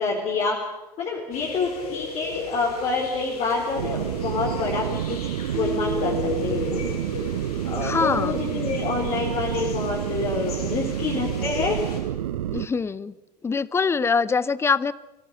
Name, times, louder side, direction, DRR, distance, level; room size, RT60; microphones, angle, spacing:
voice 1, 0.0-7.0 7.6-11.8, left 4 dB, 30° left, -2 dB, 4.1 m, -27 dB
sound 1, 1.3-12.0, left 5 dB, 65° left, 5.9 m, -36 dB
sound 2, 3.8-12.7, right 11 dB, 60° right, 0.8 m, -29 dB
Keyboard (musical), 5.5-8.4, right 3 dB, 25° right, 1.1 m, -35 dB
voice 2, 7.8-8.4 12.5-13.1 13.4-14.9, left 5 dB, 10° left, 19 dB, 0.7 m, -23 dB
24.0 x 17.5 x 8.8 m, 1.0 s
figure-of-eight pair, 85°, 21 cm